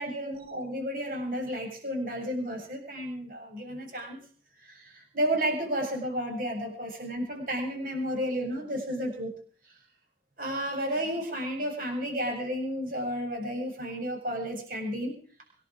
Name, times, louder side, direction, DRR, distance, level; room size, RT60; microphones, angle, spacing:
voice 1, 0.0-4.2 4.7-4.8 5.1-9.3 10.4-15.2, equal, 50° right, 2 dB, 7.5 m, -32 dB
26.5 x 10.5 x 5.1 m, 0.43 s
head